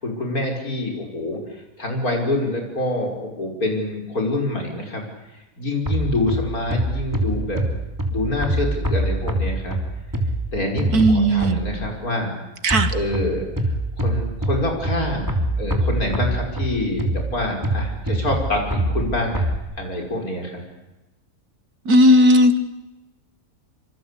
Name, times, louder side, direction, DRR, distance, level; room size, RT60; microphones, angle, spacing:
voice 1, 0.0-5.0 5.6-7.6 8.1-9.8 10.5-12.3 12.9-13.5 14.0-19.5 19.8-20.6, left 2 dB, 75° left, 2 dB, 6.1 m, -26 dB
sound 1, 5.9-11.9 12.7-19.6, right 1 dB, 10° right, 3.1 m, -25 dB
voice 2, 10.9-11.6 12.6-12.9 21.9-22.6, equal, 85° right, 10 dB, 2.2 m, -15 dB
26.0 x 25.5 x 8.5 m, 1.0 s
omnidirectional pair, 1.6 m